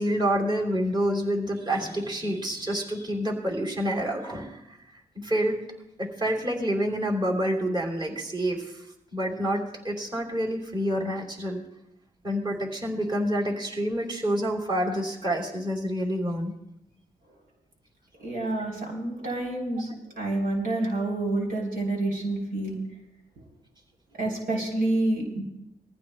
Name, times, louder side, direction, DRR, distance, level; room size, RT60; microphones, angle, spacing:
voice 1, 0.0-4.8 5.1-5.6 6.0-8.8 9.1-11.6 12.2-16.5, equal, 30° right, -1 dB, 3.1 m, -28 dB
voice 2, 18.2-22.8 24.1-25.4, right 2 dB, 75° right, -1 dB, 3.4 m, -28 dB
21.5 x 14.5 x 2.2 m, 0.85 s
cardioid pair, 60°, 15 cm